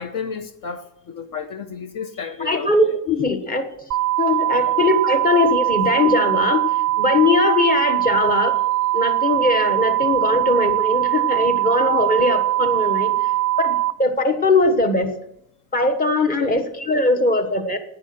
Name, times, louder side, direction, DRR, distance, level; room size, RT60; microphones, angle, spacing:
voice 1, 0.0-2.9 4.5-4.8 16.4-16.6, left 6 dB, 60° left, 1.0 m, -32 dB
voice 2, 2.4-3.7 4.2-8.6 8.9-13.3 13.6-15.1 15.7-17.8, left 2 dB, 25° left, 1.4 m, -20 dB
sound 1, 3.9-13.9, right 16 dB, 50° right, 0.5 m, -21 dB
10.5 x 9.8 x 7.7 m
cardioid pair, 145°, 37 cm